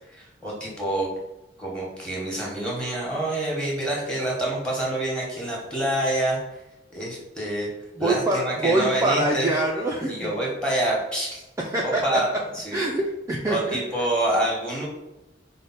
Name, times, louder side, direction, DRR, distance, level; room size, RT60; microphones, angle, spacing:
voice 1, 0.2-1.1 1.6-6.4 6.9-7.7 8.0-9.5 10.1-11.4 11.8-12.3 12.5-12.8 13.5-14.9, right 1 dB, 5° left, -5 dB, 1.2 m, -27 dB
voice 2, 8.0-10.3 11.6-12.2 12.7-13.8, right 2 dB, 15° right, -3 dB, 0.4 m, -24 dB
4.8 x 2.2 x 4.0 m, 0.93 s
head